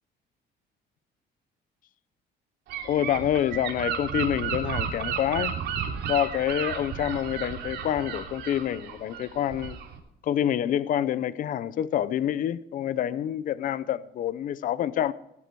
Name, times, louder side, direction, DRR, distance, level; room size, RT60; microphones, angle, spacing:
Gull seagull / Wind, 2.7-10.0, right 8 dB, 75° right, 3.3 m, -33 dB
voice 1, 2.8-5.6 6.1-9.8 10.2-15.1, left 10 dB, 50° left, 0.6 m, -27 dB
18.0 x 11.0 x 4.7 m
cardioid pair, 150°, 18 cm